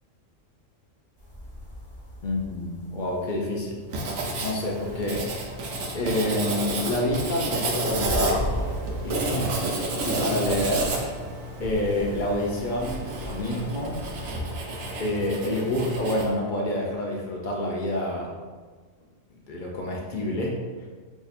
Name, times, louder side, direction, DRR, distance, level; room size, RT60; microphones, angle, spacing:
sound 1, 1.2-14.5, equal, 20° left, 0.9 m, -39 dB
voice 1, 2.2-3.8 4.4-5.3 5.9-8.8 9.0-11.0 11.6-14.0 15.0-18.3 19.5-20.6, left 1 dB, 65° left, -2 dB, 0.5 m, -28 dB
Writing, 3.9-16.3, right 2 dB, 75° right, 1.0 m, -31 dB
2.7 x 2.5 x 4.0 m, 1.5 s
omnidirectional pair, 1.4 m